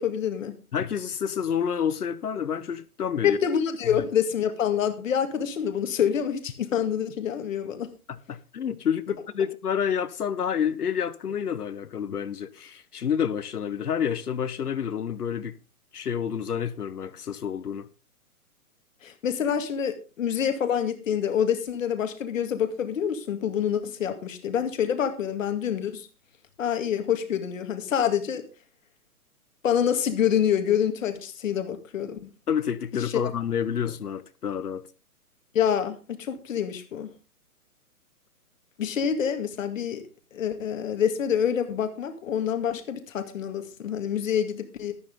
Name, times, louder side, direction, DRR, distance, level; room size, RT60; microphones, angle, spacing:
voice 1, 0.0-0.5 3.2-7.9 19.0-26.1 26.6-28.5 29.6-32.3 33.0-33.1 35.5-37.1 38.8-40.0 40.3-44.9, left 8 dB, 60° left, 2.2 m, -26 dB
voice 2, 0.7-3.4 3.8-4.0 8.1-15.6 15.9-17.9 32.5-34.8, left 8 dB, 85° left, 1.3 m, -29 dB
12.5 x 12.5 x 3.7 m
hypercardioid pair, 155°, 44 cm